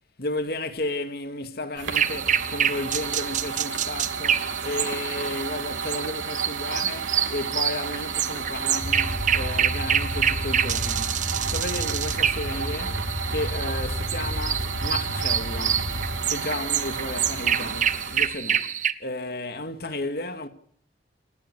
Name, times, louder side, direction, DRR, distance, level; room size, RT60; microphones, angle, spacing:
voice 1, 0.2-15.9 16.3-18.7 19.0-20.5, left 2 dB, 55° left, 2.3 m, -33 dB
sound 1, 1.8-18.3, right 5 dB, 85° right, 3.2 m, -33 dB
sound 2, 1.9-18.9, right 9 dB, 40° right, 1.1 m, -27 dB
sound 3, 8.8-16.2, equal, 85° left, 6.3 m, -32 dB
29.0 x 11.5 x 9.9 m
head